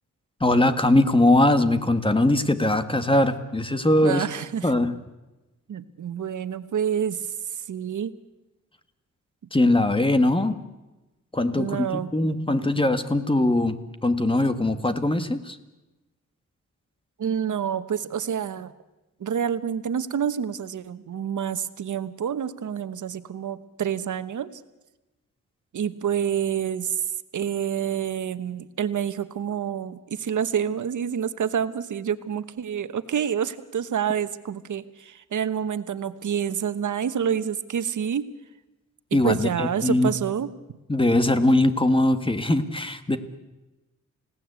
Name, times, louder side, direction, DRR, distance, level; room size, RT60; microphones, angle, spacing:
voice 1, 0.4-4.3 4.6-4.9 9.5-10.6 11.3-15.6 39.1-40.1 40.9-43.2, left 1 dB, 15° left, 10 dB, 1.7 m, -21 dB
voice 2, 4.0-4.7 5.7-8.1 11.5-12.1 17.2-18.7 19.2-24.6 25.7-27.0 27.3-38.3 39.1-40.5, right 8 dB, 80° right, 12 dB, 1.2 m, -28 dB
30.0 x 17.0 x 8.2 m, 1.1 s
wide cardioid pair, 95°, 30 cm